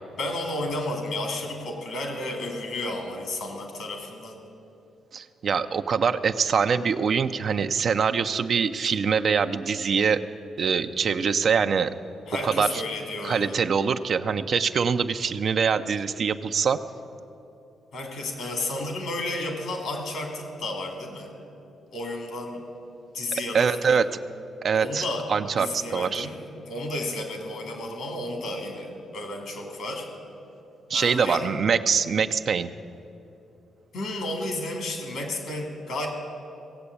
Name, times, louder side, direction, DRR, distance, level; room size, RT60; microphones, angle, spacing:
voice 1, 0.2-4.4 12.3-13.6 17.9-21.3 21.9-22.7 23.1-24.0 24.7-25.3 25.6-26.4 26.7-30.1 30.9-31.4 33.9-36.1, left 1 dB, 75° left, 3 dB, 2.8 m, -32 dB
voice 2, 5.1-10.2 10.6-11.9 12.4-12.8 13.2-16.8 23.5-24.1 24.6-26.3 30.9-32.7, right 6 dB, 60° right, 9 dB, 0.6 m, -24 dB
17.0 x 7.8 x 8.4 m, 2.8 s
supercardioid pair, 55°, 0 cm